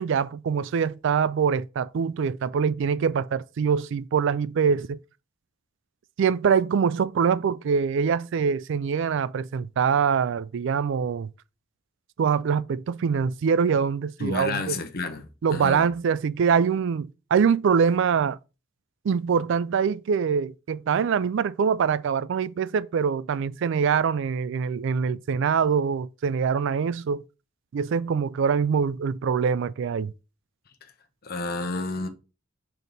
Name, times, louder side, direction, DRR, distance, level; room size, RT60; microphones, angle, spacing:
voice 1, 0.0-5.0 6.2-11.3 12.2-14.7 15.4-18.4 19.0-27.2 27.7-30.1, right 6 dB, 70° right, 0.3 m, -24 dB
voice 2, 14.2-15.9 30.8-30.9 31.2-32.1, left 3 dB, 50° left, 0.9 m, -31 dB
5.2 x 4.5 x 4.0 m
head